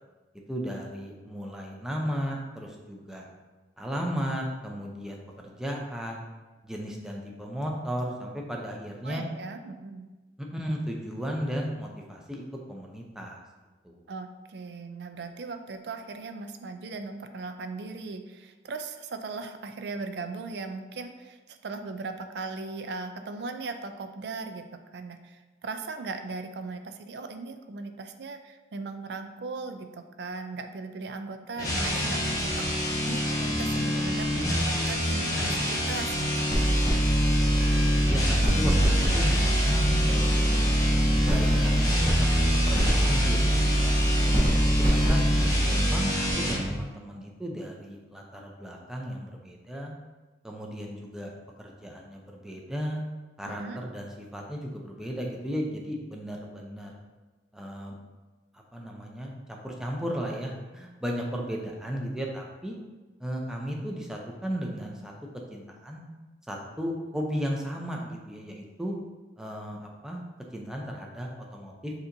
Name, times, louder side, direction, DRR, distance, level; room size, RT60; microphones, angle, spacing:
voice 1, 0.5-3.3 3.8-6.2 6.6-9.2 10.4-12.4 12.7-13.4 13.8-14.0 38.1-40.6 41.3-41.7 42.1-44.6 44.9-45.2 45.7-49.9 50.4-51.3 51.6-53.0 53.4-56.9 57.5-58.0 58.7-62.8 63.2-65.1 65.5-66.0 66.5-68.9 69.4-70.2 70.5-71.9, equal, 5° right, -1 dB, 0.5 m, -35 dB
voice 2, 9.0-10.0 14.1-36.5 53.4-53.8, right 3 dB, 65° right, 7 dB, 0.4 m, -38 dB
sound 1, 31.5-46.7, equal, 20° left, 0.9 m, -27 dB
sound 2, 36.5-46.7, right 1 dB, 35° right, 1.3 m, -24 dB
6.6 x 2.9 x 2.6 m, 1.2 s
head